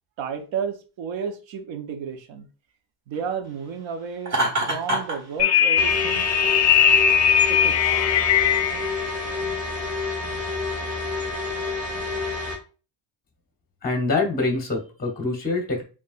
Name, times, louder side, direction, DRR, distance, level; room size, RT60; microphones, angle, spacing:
voice 1, 0.2-2.5 3.1-4.4 4.7-6.3 7.5-8.1, right 6 dB, 65° right, 0.9 m, -32 dB
Laughter, 4.3-5.2, right 1 dB, 35° right, 1.7 m, -24 dB
sound 1, 5.4-8.9, left 8 dB, 35° left, 0.4 m, -19 dB
sound 2, 5.8-12.6, left 3 dB, 15° right, 1.3 m, -29 dB
voice 2, 13.8-15.8, left 3 dB, 20° left, 0.9 m, -25 dB
5.2 x 2.6 x 2.4 m
cardioid pair, 125°, 49 cm